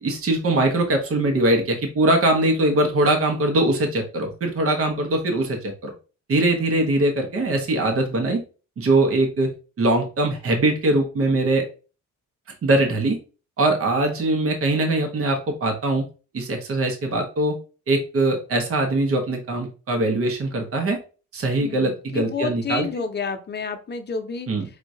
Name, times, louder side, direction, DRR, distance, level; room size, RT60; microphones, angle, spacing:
voice 1, 0.0-5.9 6.3-8.4 8.8-9.5 9.8-11.6 12.6-13.2 13.6-16.1 16.3-17.5 17.9-21.0 21.3-22.9 24.5-24.6, right 2 dB, 50° right, 3 dB, 1.2 m, -21 dB
voice 2, 21.6-24.5, left 5 dB, 35° left, 6 dB, 0.9 m, -30 dB
4.8 x 2.9 x 2.7 m, 0.34 s
cardioid pair, 90°, 30 cm